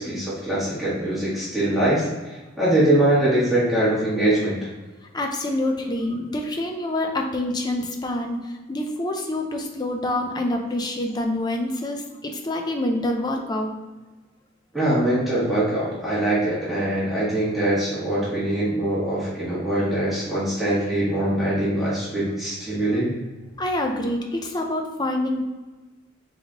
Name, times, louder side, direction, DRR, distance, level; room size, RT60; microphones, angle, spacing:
voice 1, 0.0-4.6 14.7-23.1, right 1 dB, ahead, -11 dB, 1.4 m, -23 dB
voice 2, 5.1-13.7 22.9-23.0 23.6-25.4, left 1 dB, 20° left, 3 dB, 0.5 m, -26 dB
3.8 x 3.5 x 3.5 m, 1.2 s
head